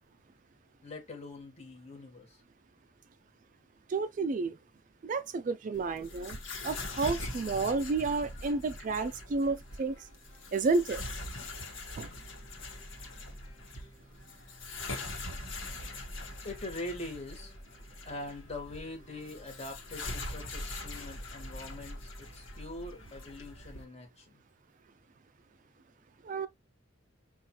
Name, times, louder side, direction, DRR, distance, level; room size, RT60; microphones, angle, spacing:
voice 1, 0.8-2.3 16.4-17.5 18.0-24.4, left 2 dB, 30° left, 1.4 m, -43 dB
voice 2, 3.9-4.5 5.0-6.4 6.6-10.0 10.5-11.0 12.0-12.1 26.2-26.5, right 4 dB, 40° right, 0.3 m, -31 dB
sound 1, 5.7-23.8, left 2 dB, 70° left, 1.2 m, -42 dB
5.4 x 2.4 x 2.9 m
head